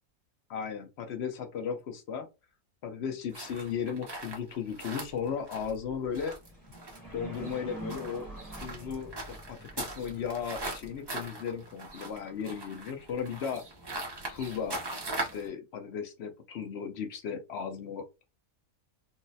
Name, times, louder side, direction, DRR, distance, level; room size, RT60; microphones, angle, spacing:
voice 1, 0.5-2.3 2.8-6.3 7.1-8.3 8.6-13.6 14.3-14.8 15.2-18.2, left 7 dB, 65° left, 7 dB, 0.7 m, -36 dB
Walking on gravel, 3.3-15.5, right 2 dB, 35° right, 0.3 m, -40 dB
sound 1, 6.4-14.2, right 2 dB, 15° left, 1.0 m, -48 dB
3.9 x 2.0 x 2.6 m, 0.26 s
omnidirectional pair, 1.6 m